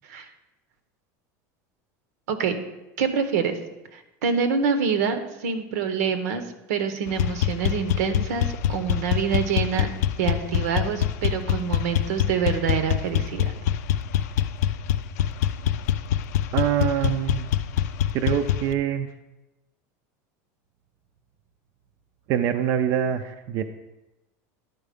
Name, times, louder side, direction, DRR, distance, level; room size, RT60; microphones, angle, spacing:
voice 1, 3.0-3.6 3.9-6.4 6.7-9.9 10.2-13.5, right 6 dB, 85° right, 9 dB, 0.9 m, -26 dB
sound 1, 7.1-18.7, left 10 dB, 90° left, 0.4 m, -25 dB
voice 2, 16.5-17.5 18.1-19.1 22.3-23.6, right 9 dB, 35° right, 8 dB, 0.4 m, -24 dB
10.5 x 4.5 x 5.1 m, 0.99 s
supercardioid pair, 180°, 8 cm